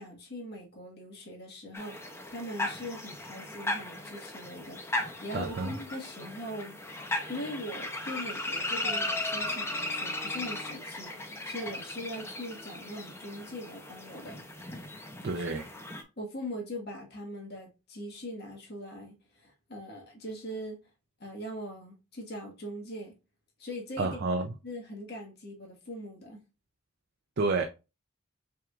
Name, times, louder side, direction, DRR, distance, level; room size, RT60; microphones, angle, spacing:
voice 1, 0.0-6.8 7.3-14.4 16.2-20.8 21.2-23.1 23.6-26.4, equal, 50° left, 1.6 m, -41 dB
sound 1, 1.7-16.0, left 2 dB, 10° left, 0.7 m, -36 dB
voice 2, 5.3-5.7 15.2-15.7 24.0-24.5 27.4-27.6, right 3 dB, 50° right, 0.5 m, -29 dB
5.9 x 3.6 x 2.4 m
head